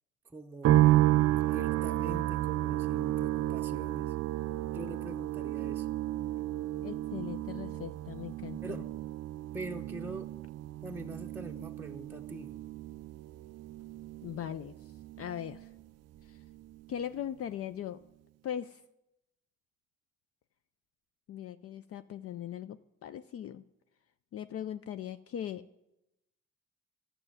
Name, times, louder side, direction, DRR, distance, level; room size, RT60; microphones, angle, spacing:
voice 1, 0.2-0.9 1.5-4.2 4.6-5.9 8.6-8.8 9.5-10.3 10.8-12.5, right 2 dB, 5° right, 2 dB, 0.7 m, -43 dB
sound 1, 0.6-15.9 16.2-17.0, right 14 dB, 60° right, 0.4 m, -32 dB
voice 2, 6.8-8.8 14.2-14.9 15.2-15.7 16.2-16.4 16.9-18.0 18.4-18.8 21.3-23.6 24.3-25.6, left 10 dB, 50° left, 12 dB, 0.4 m, -39 dB
12.0 x 6.6 x 9.0 m, 0.92 s
cardioid pair, 90°, 30 cm